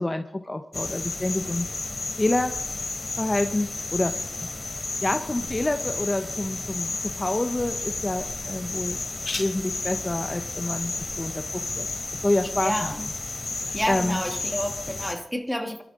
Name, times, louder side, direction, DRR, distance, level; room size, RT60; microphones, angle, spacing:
voice 1, 0.0-1.7 2.2-2.5 3.2-4.1 4.4-4.5 5.0-9.0 9.4-11.4 11.8-11.9 12.2-12.9 13.7-14.2, left 2 dB, 20° left, 7 dB, 0.8 m, -27 dB
sound 1, 0.7-15.1, left 3 dB, 35° left, 2.9 m, -32 dB
sound 2, 5.2-12.7, left 3 dB, 60° left, 2.6 m, -44 dB
voice 2, 12.5-13.1 13.7-15.8, equal, ahead, 7 dB, 1.4 m, -30 dB
24.5 x 12.5 x 3.7 m, 0.78 s
wide cardioid pair, 90°, 0 cm